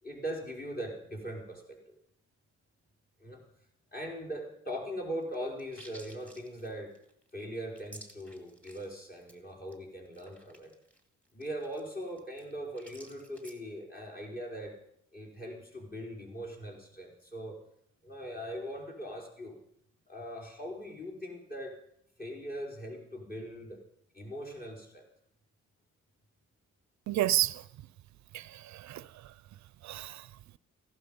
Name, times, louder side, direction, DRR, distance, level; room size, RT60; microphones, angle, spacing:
voice 1, 0.0-1.9 3.2-3.4 3.9-6.9 7.3-10.7 11.3-14.8 15.1-17.6 18.0-19.6 20.1-21.8 22.2-23.8 24.1-25.0, equal, 30° left, 4.9 m, -40 dB
sound 1, 5.2-8.9 9.2-9.4 9.7-9.8 10.1-13.6, right 1 dB, 5° left, 2.4 m, -54 dB
voice 2, 27.1-27.6 28.3-29.3 29.8-30.3, right 14 dB, 70° right, 0.5 m, -31 dB
16.0 x 11.5 x 5.5 m
cardioid pair, 90°, 30 cm